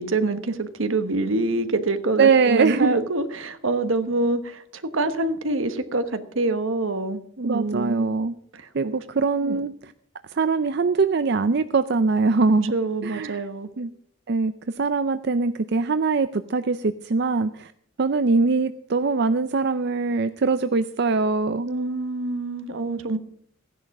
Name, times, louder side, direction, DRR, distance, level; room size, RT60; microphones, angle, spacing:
voice 1, 0.0-8.1 8.5-8.9 9.4-9.6 12.7-13.7 21.7-23.2, right 2 dB, 75° right, 10 dB, 1.2 m, -26 dB
voice 2, 2.2-3.0 7.4-8.3 8.7-9.9 10.3-12.7 13.0-13.4 13.8-13.9 14.3-17.7 18.0-21.7, right 4 dB, 55° right, 11 dB, 0.5 m, -22 dB
15.5 x 10.5 x 6.0 m, 0.66 s
head